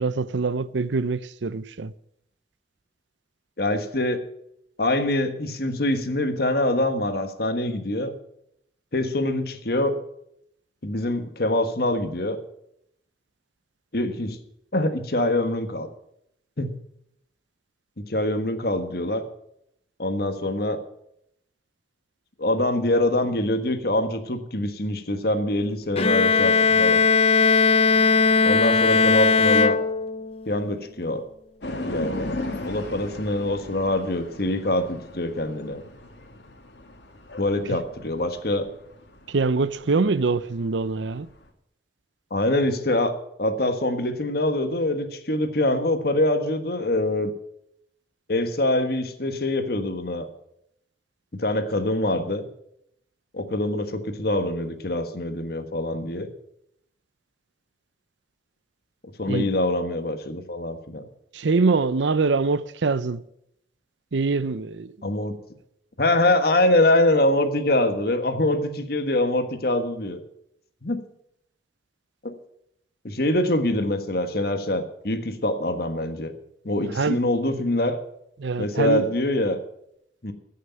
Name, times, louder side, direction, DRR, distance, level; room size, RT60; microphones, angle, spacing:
voice 1, 0.0-1.9 39.3-41.3 59.3-59.5 61.3-63.2 64.1-65.1 76.8-77.2 78.4-79.1, right 4 dB, 80° right, 0.6 m, -24 dB
voice 2, 3.6-4.2 4.8-8.1 8.9-10.0 10.8-12.4 13.9-14.4 14.7-15.9 16.6-16.8 18.0-19.2 20.0-20.8 22.4-27.0 28.4-29.8 30.5-31.2 31.8-32.3 32.6-35.8 37.4-38.7 42.3-43.1 43.4-47.3 48.3-50.3 51.3-52.4 53.3-56.3 59.2-61.0 65.0-65.3 66.0-70.2 70.8-71.0 72.2-72.3 73.0-76.3 76.6-78.0 78.6-79.6 80.2-80.3, left 1 dB, 55° left, 1.4 m, -24 dB
Bowed string instrument, 26.0-30.4, left 4 dB, 35° left, 0.6 m, -18 dB
sound 1, 31.6-41.4, left 1 dB, 75° left, 2.1 m, -37 dB
15.0 x 6.6 x 8.8 m
head